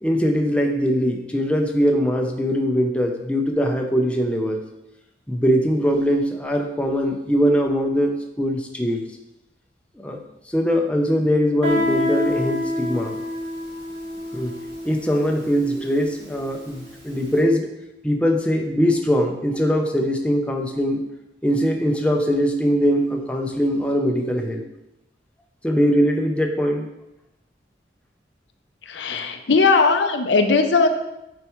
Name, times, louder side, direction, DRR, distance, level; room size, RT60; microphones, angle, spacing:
voice 1, 0.0-4.6 5.3-9.0 10.0-13.1 14.3-14.5 14.8-17.7 18.0-21.0 21.4-24.6 25.6-26.9, equal, 5° left, 2 dB, 0.6 m, -21 dB
Guitar, 11.6-17.1, left 1 dB, 70° right, 2.0 m, -27 dB
voice 2, 28.9-30.9, left 4 dB, 80° left, 6 dB, 0.6 m, -18 dB
8.8 x 4.6 x 3.1 m, 0.90 s
head